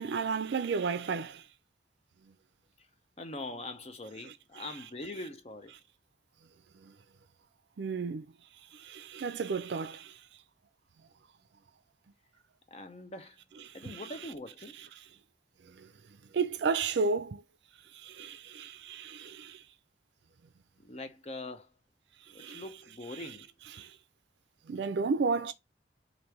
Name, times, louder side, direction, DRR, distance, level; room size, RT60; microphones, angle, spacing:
voice 1, 0.0-1.4 4.2-4.3 6.8-6.9 7.8-8.2 8.7-10.1 13.7-14.1 15.8-15.9 16.3-17.4 17.9-19.6 22.4-22.6 23.7-23.9 24.7-25.5, right 4 dB, 70° right, 0.4 m, -33 dB
voice 2, 3.2-5.7 12.7-13.4 13.7-14.8 20.8-21.7 22.3-23.5, left 2 dB, 35° left, 0.6 m, -42 dB
3.4 x 2.6 x 4.4 m
head